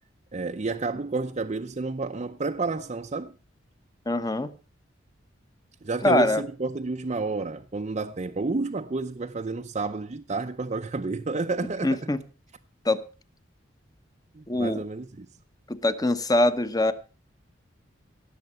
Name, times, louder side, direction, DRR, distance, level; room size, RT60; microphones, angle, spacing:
voice 1, 0.3-3.3 5.8-12.1 14.3-15.3, right 3 dB, 35° right, 0.6 m, -30 dB
voice 2, 4.1-4.5 6.0-6.4 11.8-12.2 12.8-13.0 14.5-14.8 15.7-16.9, left 1 dB, 20° left, 0.9 m, -23 dB
17.0 x 7.2 x 5.5 m
head